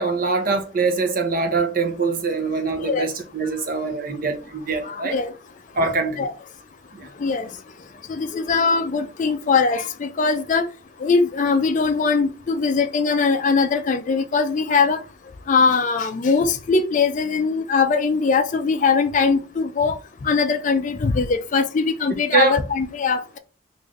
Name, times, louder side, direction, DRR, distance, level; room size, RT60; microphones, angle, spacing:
voice 1, 0.0-5.2 5.7-6.3 6.9-7.1 22.3-22.6, right 4 dB, 45° right, 0.7 m, -23 dB
voice 2, 4.9-5.3 6.2-6.3 7.2-7.5 8.1-10.7 11.0-15.0 15.5-20.0 20.2-23.4, left 4 dB, 40° left, 0.4 m, -21 dB
3.2 x 2.5 x 3.6 m
head